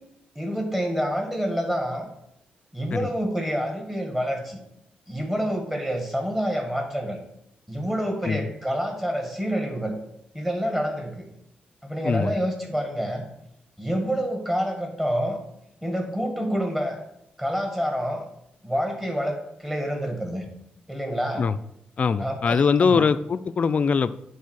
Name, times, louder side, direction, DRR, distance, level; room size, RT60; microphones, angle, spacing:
voice 1, 0.4-2.1 2.7-4.6 5.1-7.2 7.7-10.0 10.3-11.3 11.8-13.2 13.8-15.4 15.8-17.0 17.4-18.3 18.6-20.4 20.9-21.5 22.2-23.0, equal, 10° right, 2.0 m, -27 dB
voice 2, 12.0-12.3 21.4-21.6 22.0-24.1, left 5 dB, 45° left, 0.4 m, -22 dB
9.4 x 4.2 x 6.5 m
cardioid pair, 105°, 3 cm